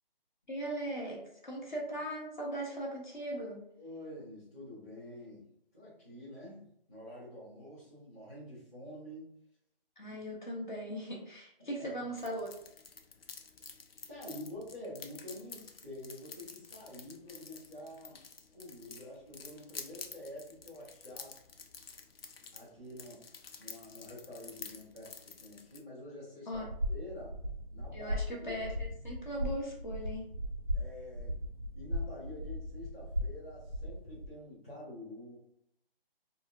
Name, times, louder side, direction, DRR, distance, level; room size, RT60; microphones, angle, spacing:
voice 1, 0.5-3.6 10.0-12.5 26.5-26.7 27.9-30.3, equal, 50° left, -2 dB, 1.0 m, -39 dB
voice 2, 3.8-6.6 6.9-9.3 10.0-10.2 11.6-11.9 14.1-18.2 18.5-21.3 22.5-23.2 23.6-27.4 27.7-28.5 30.7-31.4 31.7-35.4, left 1 dB, 15° left, -13 dB, 0.8 m, -48 dB
sound 1, 12.2-25.8, left 5 dB, 75° left, 0.5 m, -50 dB
sound 2, 26.5-34.3, equal, 40° right, 0.4 m, -37 dB
3.6 x 2.1 x 2.5 m, 0.72 s
figure-of-eight pair, 170°, 30 cm